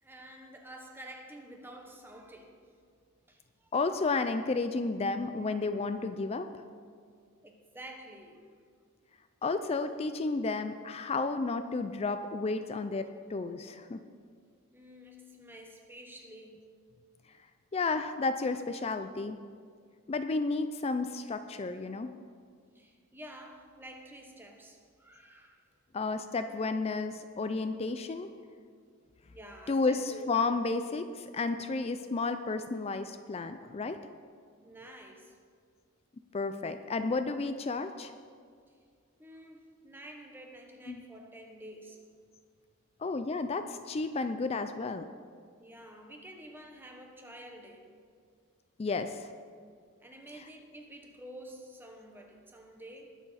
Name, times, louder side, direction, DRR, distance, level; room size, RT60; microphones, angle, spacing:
voice 1, 0.0-2.6 3.3-3.7 7.4-8.6 14.7-16.7 22.7-25.6 29.3-30.7 34.6-35.4 39.2-42.1 45.6-47.9 50.0-53.2, right 1 dB, 10° right, 3 dB, 1.2 m, -49 dB
voice 2, 3.7-6.5 9.4-14.0 17.7-19.4 20.1-22.1 25.9-28.3 29.7-34.0 36.3-38.1 40.9-41.0 43.0-45.0 48.8-49.3, left 3 dB, 30° left, 9 dB, 0.4 m, -32 dB
20.5 x 7.2 x 4.1 m, 2.1 s
head